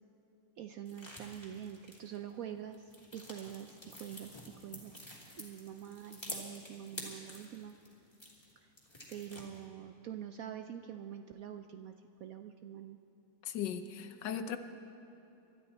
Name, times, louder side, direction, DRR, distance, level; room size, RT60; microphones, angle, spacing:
voice 1, 0.6-7.7 8.6-8.7 9.1-11.9 12.2-13.0, right 10 dB, 70° right, 7 dB, 0.8 m, -46 dB
sound 1, 0.9-2.3 2.7-8.5 8.8-9.7, left 1 dB, 15° left, 2.5 m, -49 dB
voice 2, 13.4-14.6, left 8 dB, 80° left, 9 dB, 1.4 m, -37 dB
25.0 x 12.5 x 4.2 m, 3.0 s
omnidirectional pair, 1.9 m